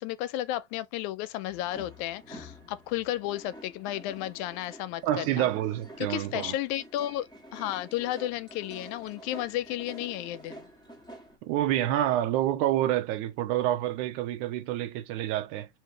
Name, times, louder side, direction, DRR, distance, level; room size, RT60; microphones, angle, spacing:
voice 1, 0.0-5.5 6.0-10.7, left 14 dB, 85° left, 1.9 m, -33 dB
sound 1, 1.5-11.4, equal, 5° left, 0.9 m, -48 dB
voice 2, 5.0-6.5 11.4-15.7, right 13 dB, 85° right, 2.2 m, -28 dB
4.9 x 2.8 x 3.2 m
omnidirectional pair, 3.4 m